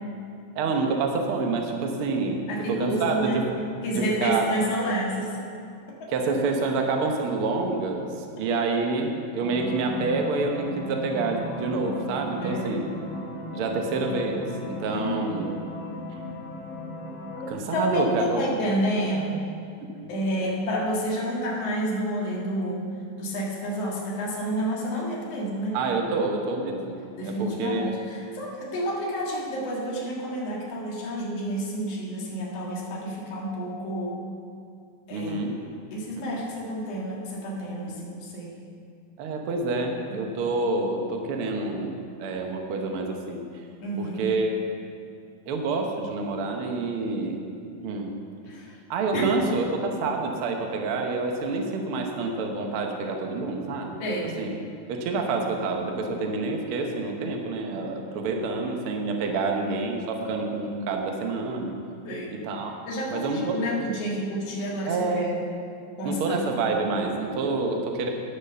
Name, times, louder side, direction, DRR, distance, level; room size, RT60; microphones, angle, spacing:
voice 1, 0.5-2.4 2.7-3.5 3.9-4.5 6.1-12.9 13.5-15.5 17.5-18.5 19.8-19.9 25.7-27.9 35.1-35.6 36.2-36.3 39.2-41.9 42.2-43.4 44.0-44.6 45.5-47.5 47.8-48.1 48.9-49.7 50.0-54.0 54.4-54.5 54.9-61.7 62.4-62.8 63.1-63.6 64.9-65.3 66.0-68.1, right 3 dB, 80° right, 2 dB, 1.2 m, -27 dB
voice 2, 2.5-3.4 3.8-5.4 12.4-12.7 14.9-15.2 17.7-19.4 20.1-22.9 23.2-25.8 27.2-34.2 35.1-35.4 35.9-38.5 40.1-40.3 43.8-44.3 48.5-48.8 49.1-49.5 54.0-54.3 62.0-62.3 62.9-65.3 66.0-66.4, equal, 50° left, -3 dB, 2.5 m, -29 dB
sound 1, 9.4-17.5, left 1 dB, 30° left, 2.4 m, -36 dB
10.0 x 8.1 x 6.8 m, 2.4 s
omnidirectional pair, 4.0 m